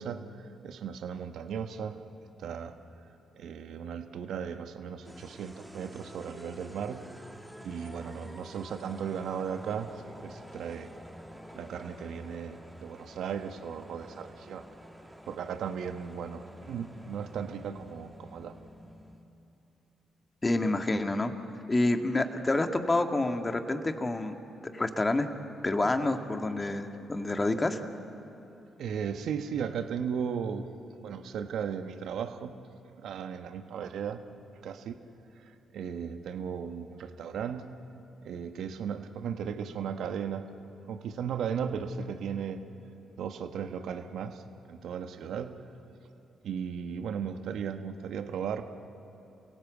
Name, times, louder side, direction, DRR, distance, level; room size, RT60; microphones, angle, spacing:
voice 1, 0.0-2.0 2.4-2.7 3.3-7.1 7.6-10.9 11.5-14.6 15.2-18.5 28.8-30.7 31.0-32.6 33.0-34.2 34.6-35.0 35.4-37.6 38.2-40.5 40.9-42.6 43.2-44.4 44.7-45.6 46.4-48.6, right 7 dB, 70° right, 8 dB, 1.3 m, -36 dB
sound 1, 5.0-19.3, equal, 5° right, 2.8 m, -49 dB
voice 2, 20.4-21.3 21.7-24.3 24.7-25.3 25.6-27.8, left 2 dB, 30° left, 6 dB, 2.1 m, -28 dB
28.5 x 17.0 x 8.2 m, 2.9 s
hypercardioid pair, 45°, 0 cm